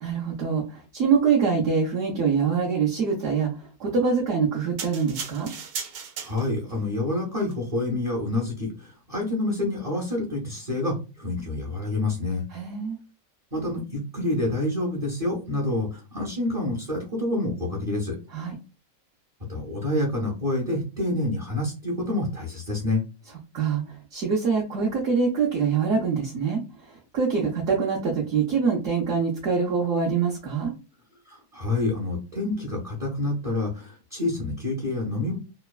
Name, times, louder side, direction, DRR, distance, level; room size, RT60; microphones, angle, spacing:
voice 1, 0.0-5.5 12.5-13.0 18.3-18.5 23.5-30.7, right 5 dB, 65° right, -2 dB, 0.8 m, -25 dB
sound 1, 4.8-6.7 7.4-7.5, right 6 dB, 85° right, 1.3 m, -36 dB
voice 2, 6.2-12.5 13.5-18.2 19.5-23.0 31.3-35.4, left 2 dB, 35° right, -3 dB, 0.5 m, -28 dB
3.0 x 2.2 x 2.3 m, 0.32 s
omnidirectional pair, 1.8 m